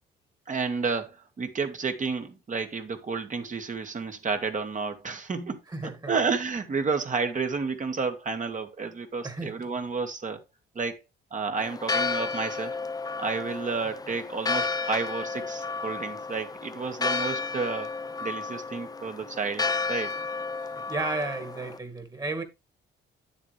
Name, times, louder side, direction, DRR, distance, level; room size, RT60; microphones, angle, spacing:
voice 1, 0.5-10.4 10.8-11.0 11.3-12.8 13.2-17.9 18.2-20.1, right 4 dB, 40° right, 1.9 m, -31 dB
voice 2, 5.7-6.1 9.2-9.6 20.7-22.4, right 2 dB, 20° right, 2.1 m, -33 dB
Church bell, 11.6-21.8, left 4 dB, 20° left, 0.5 m, -32 dB
9.4 x 7.4 x 3.4 m
cardioid pair, 90°, 20 cm